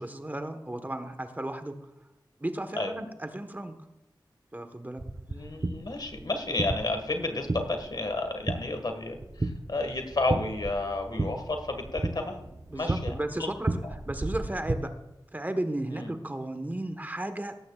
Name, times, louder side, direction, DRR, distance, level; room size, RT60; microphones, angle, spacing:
voice 1, 0.0-1.7 2.4-3.8 4.5-5.0 12.7-14.9 15.3-17.6, right 1 dB, 20° right, 8 dB, 1.2 m, -34 dB
sound 1, 5.0-14.8, right 2 dB, 40° right, 0.8 m, -34 dB
voice 2, 5.3-13.5 13.8-13.9 15.9-16.2, left 2 dB, 60° left, 6 dB, 1.6 m, -32 dB
17.0 x 14.0 x 2.4 m, 0.96 s
wide cardioid pair, 70°, 8 cm